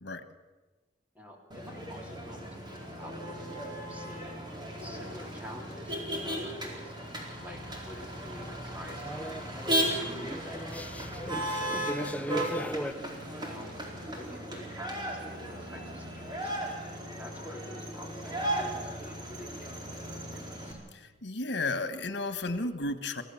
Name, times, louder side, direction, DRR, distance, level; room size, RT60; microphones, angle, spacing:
voice 1, 1.1-6.9 7.4-11.3 11.6-11.8 13.4-20.8, equal, 10° right, 1 dB, 3.6 m, -48 dB
Motor vehicle (road), 1.5-20.7, right 1 dB, 25° right, 4.4 m, -36 dB
sound 1, 8.7-12.9, equal, 10° left, 0.8 m, -37 dB
voice 2, 20.9-23.2, left 2 dB, 80° left, 11 dB, 1.6 m, -33 dB
25.5 x 16.5 x 7.3 m, 1.3 s
head